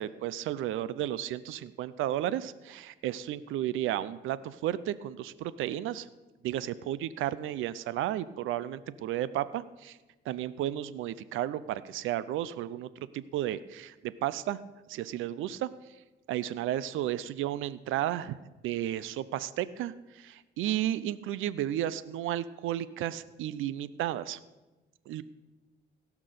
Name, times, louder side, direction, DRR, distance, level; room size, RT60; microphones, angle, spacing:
voice 1, 0.0-6.1 6.4-10.0 10.3-14.6 14.9-15.7 16.3-18.4 18.6-24.4 25.1-25.2, right 12 dB, 85° right, 17 dB, 0.6 m, -33 dB
16.5 x 6.0 x 6.6 m, 1.1 s
cardioid pair, 90°, 20 cm